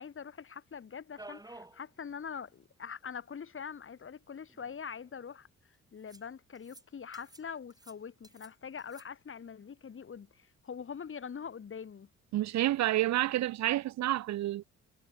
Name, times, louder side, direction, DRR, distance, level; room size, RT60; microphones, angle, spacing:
voice 1, 0.0-5.5 5.9-12.1, left 6 dB, 45° left, 3.4 m, -43 dB
sound 1, 1.2-1.8 2.2-2.3 2.5-2.6 3.7-3.8 4.5-5.1 6.1-6.3 6.5-6.8 7.1-7.5 7.7-8.5 8.8-9.0, right 2 dB, 15° right, 5.8 m, -52 dB
voice 2, 12.3-14.6, right 14 dB, 65° right, 0.6 m, -29 dB
cardioid pair, 90°, 30 cm